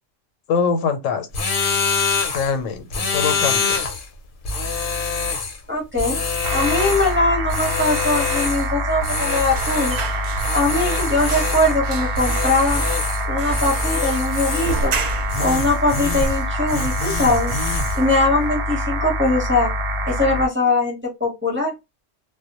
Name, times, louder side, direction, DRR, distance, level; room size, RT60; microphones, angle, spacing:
voice 1, 0.5-1.3 2.3-3.8, left 5 dB, 90° left, 1.0 m, -23 dB
sound 1, 1.3-2.5 2.9-4.1 4.4-5.6 6.0-7.1 7.5-8.7 9.0-10.1 10.4-11.8 12.1-13.2 13.5-14.9 15.3-16.4 16.7-18.0, left 4 dB, 55° left, 0.6 m, -25 dB
voice 2, 5.7-6.2 6.5-10.0 10.5-12.8 13.3-14.9 15.4-17.5 17.9-19.7 20.1-21.7, left 2 dB, 10° right, 0.7 m, -21 dB
sound 2, 6.4-20.5, equal, 60° right, 0.7 m, -25 dB
sound 3, 9.5-10.7 11.0-15.5 15.9-16.0 16.3-17.1 17.4-17.6 17.9-18.6 18.9-19.1, right 5 dB, 85° right, 0.3 m, -33 dB
2.2 x 2.1 x 2.8 m
omnidirectional pair, 1.3 m